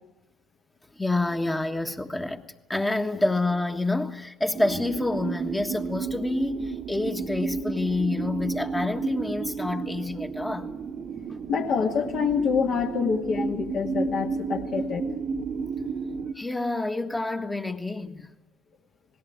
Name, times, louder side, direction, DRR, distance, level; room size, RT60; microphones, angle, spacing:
voice 1, 1.0-2.4 2.7-10.7 16.3-18.3, left 2 dB, 15° left, 1.4 m, -28 dB
sound 1, 4.5-16.3, right 5 dB, 50° right, 1.1 m, -32 dB
voice 2, 11.5-15.1, left 6 dB, 55° left, 2.1 m, -26 dB
19.5 x 16.5 x 9.4 m
hypercardioid pair, 55°, 0 cm